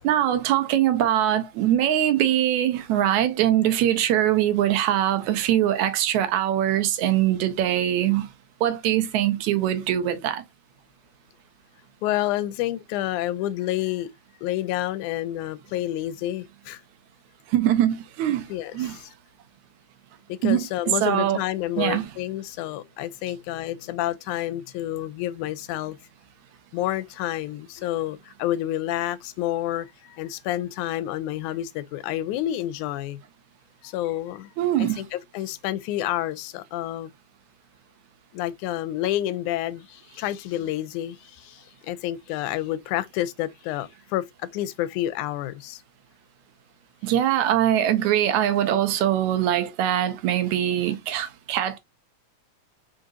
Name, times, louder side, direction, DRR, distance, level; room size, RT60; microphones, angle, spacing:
voice 1, 0.0-8.3 8.6-10.4 17.5-19.0 20.4-20.7 21.0-21.4 21.8-22.1 34.6-35.0 47.0-51.8, right 11 dB, 80° right, 2.2 m, -22 dB
voice 2, 12.0-14.1 14.4-16.8 18.5-19.0 20.3-26.0 26.7-33.2 33.8-34.5 34.8-37.1 38.3-45.8, left 13 dB, 90° left, 2.0 m, -29 dB
5.0 x 3.9 x 2.5 m
omnidirectional pair, 3.4 m